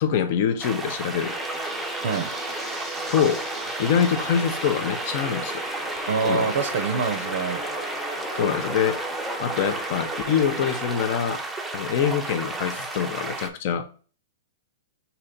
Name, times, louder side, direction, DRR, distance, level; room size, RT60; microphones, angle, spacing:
voice 1, 0.0-1.3 3.1-3.5 3.8-5.6 6.3-6.5 8.3-9.0 9.4-11.4 11.7-13.9, left 8 dB, 50° left, 0.6 m, -24 dB
sound 1, 0.6-13.5, right 2 dB, 5° right, 0.5 m, -33 dB
sound 2, 1.2-10.9, equal, 10° left, 0.9 m, -34 dB
voice 2, 6.1-7.6, right 5 dB, 65° right, 0.5 m, -25 dB
3.2 x 2.8 x 3.9 m
hypercardioid pair, 120°, 0 cm